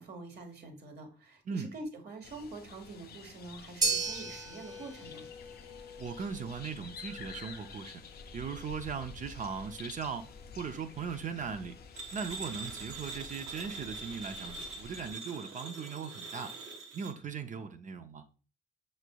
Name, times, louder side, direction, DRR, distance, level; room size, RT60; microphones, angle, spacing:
voice 1, 0.0-5.2, right 2 dB, 55° right, 1.2 m, -45 dB
sound 1, 2.2-15.1, left 5 dB, 50° left, 0.5 m, -50 dB
sound 2, 3.8-12.2, right 3 dB, 20° right, 0.8 m, -39 dB
voice 2, 6.0-8.0 8.3-11.8 12.1-16.5 16.9-18.3, right 6 dB, 40° right, 0.5 m, -39 dB
sound 3, 12.0-17.1, right 3 dB, 80° right, 1.0 m, -43 dB
5.8 x 3.2 x 2.2 m
cardioid pair, 90°, 20 cm